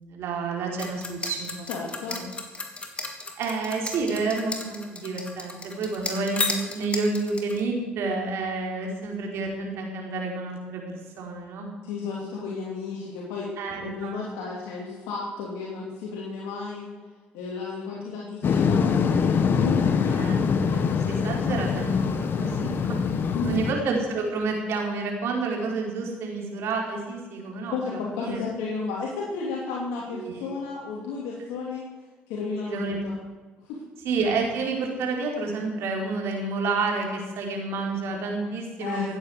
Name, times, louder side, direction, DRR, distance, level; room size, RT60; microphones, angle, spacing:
voice 1, 0.0-1.7 2.1-2.2 3.4-11.8 13.6-14.2 20.1-28.4 30.1-30.6 32.7-33.0 34.0-39.1, right 3 dB, 70° right, 0 dB, 4.7 m, -30 dB
sound 1, 0.8-7.6, left 3 dB, 25° left, 2.9 m, -32 dB
voice 2, 1.7-2.2 11.8-13.5 13.8-16.9 17.3-19.8 23.3-23.6 27.7-31.9 32.3-33.2 33.7-33.8 38.8-39.1, left 4 dB, 85° left, -4 dB, 3.0 m, -33 dB
sound 2, 18.4-23.7, left 6 dB, 55° left, 1.4 m, -24 dB
15.5 x 9.5 x 8.1 m, 1.3 s
supercardioid pair, 75°, 4 cm